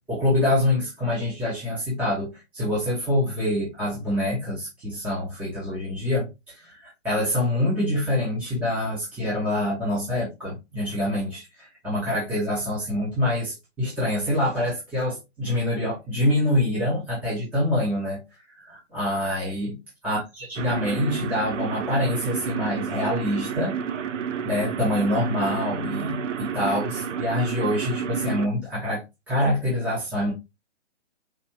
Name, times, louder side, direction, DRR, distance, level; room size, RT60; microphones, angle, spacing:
voice 1, 0.1-18.2 18.5-19.8 20.0-23.8 24.4-29.0 29.3-30.3, left 1 dB, 5° right, 0.9 m, -26 dB
sound 1, 20.6-28.5, right 7 dB, 85° right, 0.7 m, -30 dB
5.0 x 3.3 x 2.9 m
hypercardioid pair, 165°, 36 cm